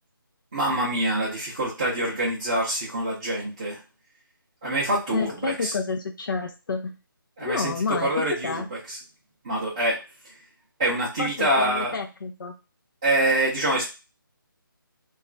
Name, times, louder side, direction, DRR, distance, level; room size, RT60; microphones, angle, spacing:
voice 1, 0.5-3.8 4.6-5.7 7.4-8.5 8.9-9.0 9.4-10.0 10.8-12.0 13.0-13.9, right 1 dB, 15° right, -9 dB, 0.5 m, -25 dB
voice 2, 5.1-6.9 7.4-8.7 11.2-12.5, left 4 dB, 60° left, 2 dB, 0.5 m, -29 dB
2.3 x 2.0 x 3.7 m, 0.28 s
hypercardioid pair, 175°, 12 cm